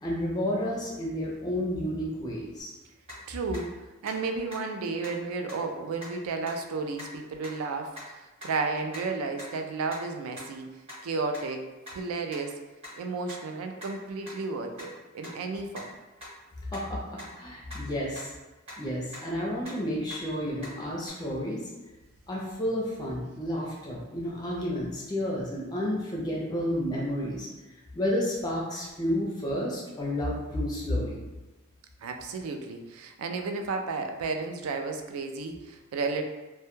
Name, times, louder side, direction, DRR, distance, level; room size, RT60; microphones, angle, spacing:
voice 1, 0.0-2.7 16.7-18.3 18.8-21.7 22.3-27.5 27.9-31.2, left 1 dB, 20° left, -4 dB, 0.4 m, -31 dB
sound 1, 2.6-2.7 3.1-3.2 3.5-3.6 4.0-4.1 4.5-4.6 5.0-5.1 5.5-5.6 6.0-6.1 6.5-6.6 7.0-7.1 7.4-7.5 7.9-8.0 8.4-8.5 8.9-9.0 9.4-9.5 9.9-10.0 10.4-10.5 10.9-11.0 11.3-11.4 11.8-11.9 12.3-12.4 12.8-12.9 13.3-13.4 13.8-13.9 14.3-14.4 14.8-14.9 15.2-15.3 15.7-15.8 16.2-16.3 16.7-16.8 17.2-17.3 17.7-17.8 18.2-18.3 18.6-18.7 19.1-19.2 19.6-19.7 20.1-20.2 20.6-20.7 21.1-21.2, left 1 dB, 30° right, 0.8 m, -42 dB
voice 2, 3.3-3.7 4.0-10.7 11.0-12.6 13.0-15.9 32.0-36.2, right 4 dB, 80° right, 5 dB, 0.3 m, -33 dB
2.2 x 2.1 x 3.0 m, 1.1 s
head